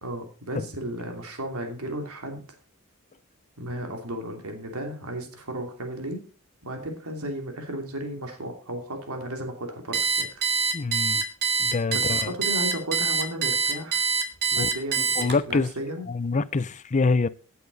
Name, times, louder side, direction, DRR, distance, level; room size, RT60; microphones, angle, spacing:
voice 1, 0.0-2.4 3.6-6.2 6.6-10.3 11.9-14.0 14.5-16.1, right 1 dB, 80° right, 2.8 m, -34 dB
Alarm, 9.9-15.6, right 5 dB, 50° right, 2.0 m, -25 dB
voice 2, 10.7-11.2 11.6-12.4 14.6-14.7 15.2-15.7 16.1-17.3, left 4 dB, 35° left, 0.5 m, -25 dB
15.5 x 8.5 x 4.0 m
head